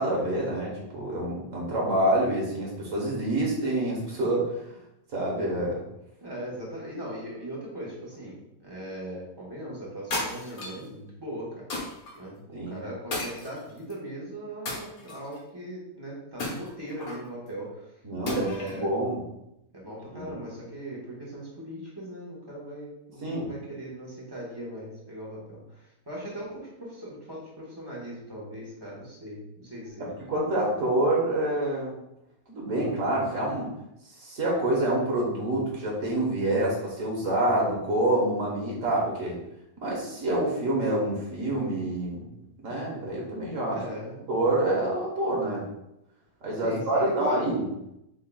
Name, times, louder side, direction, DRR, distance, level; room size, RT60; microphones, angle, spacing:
voice 1, 0.0-4.7 5.1-5.8 12.5-12.8 18.0-19.2 20.1-20.3 23.2-23.5 30.0-32.0 32.5-33.7 34.2-39.4 39.8-42.3 42.6-43.8 44.3-45.7 46.4-47.7, right 1 dB, 60° right, -3 dB, 1.5 m, -27 dB
voice 2, 6.2-8.3 8.6-11.5 12.1-17.8 18.3-18.9 19.7-25.8 26.1-30.1 43.6-44.3 46.6-47.5, right 1 dB, 15° right, -5 dB, 1.3 m, -39 dB
sound 1, 10.1-10.9 11.7-12.1 13.1-13.9 14.7-15.4 16.4-17.3 18.3-18.8, left 2 dB, 65° left, 1.5 m, -34 dB
5.6 x 3.7 x 2.3 m, 0.83 s
omnidirectional pair, 1.6 m